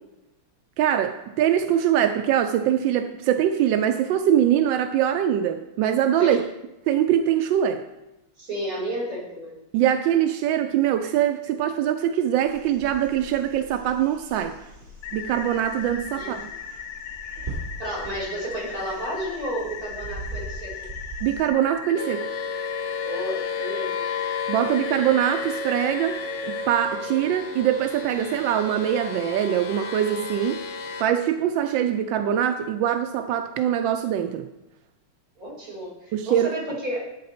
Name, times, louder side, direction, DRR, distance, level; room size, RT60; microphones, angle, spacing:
voice 1, 0.8-6.4 6.9-7.8 9.7-14.5 15.1-16.5 21.2-22.3 24.5-30.6 31.0-34.5 36.1-36.5, right 10 dB, 75° right, 7 dB, 1.1 m, -23 dB
voice 2, 8.4-9.6 16.1-16.6 17.8-20.9 23.0-24.1 35.4-37.1, equal, 40° right, -6 dB, 4.9 m, -32 dB
sound 1, 12.4-21.5, right 2 dB, 20° right, 2.9 m, -41 dB
sound 2, 15.0-26.6, left 8 dB, 60° left, 1.1 m, -38 dB
sound 3, 22.0-31.0, left 5 dB, 80° left, 0.6 m, -32 dB
11.5 x 8.1 x 4.3 m, 0.97 s
omnidirectional pair, 2.4 m